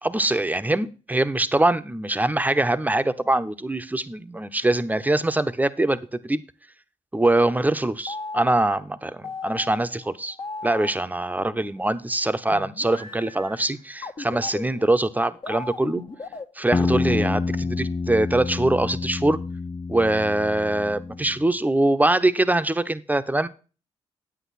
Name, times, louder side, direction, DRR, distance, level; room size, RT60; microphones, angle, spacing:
voice 1, 0.0-6.4 7.1-10.4 10.6-16.0 16.6-19.4 19.9-23.5, right 2 dB, 10° right, 12 dB, 1.0 m, -23 dB
sound 1, 8.1-11.6 12.5-16.4, left 3 dB, 40° left, 1.3 m, -37 dB
sound 2, 16.7-21.4, left 4 dB, 25° left, 0.5 m, -28 dB
9.1 x 8.3 x 4.1 m, 0.34 s
supercardioid pair, 50°, 13 cm